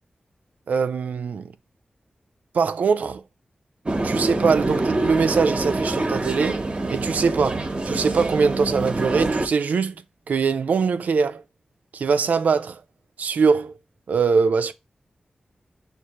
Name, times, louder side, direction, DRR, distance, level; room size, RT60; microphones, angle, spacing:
voice 1, 0.7-1.5 2.5-3.2 4.0-6.6 6.9-10.0 10.3-11.4 11.9-12.8 13.2-13.7 14.1-14.7, right 5 dB, 90° right, 0.3 m, -22 dB
sound 1, 3.9-9.5, right 2 dB, 40° right, 0.8 m, -25 dB
6.3 x 2.4 x 2.9 m
cardioid pair, 55°, 3 cm